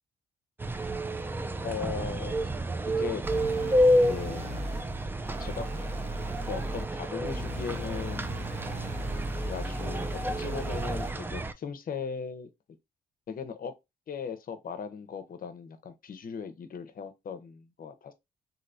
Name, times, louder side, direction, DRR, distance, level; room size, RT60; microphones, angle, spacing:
sound 1, 0.6-11.5, equal, 10° right, 0.3 m, -30 dB
voice 1, 1.6-2.4 3.0-3.2 3.9-4.5 5.4-5.9 6.5-8.4 9.4-12.5 13.3-13.7 14.1-18.1, left 6 dB, 50° left, 0.7 m, -38 dB
sound 2, 3.2-11.2, equal, 35° right, 0.9 m, -37 dB
3.1 x 2.7 x 2.5 m
supercardioid pair, 60°, 18 cm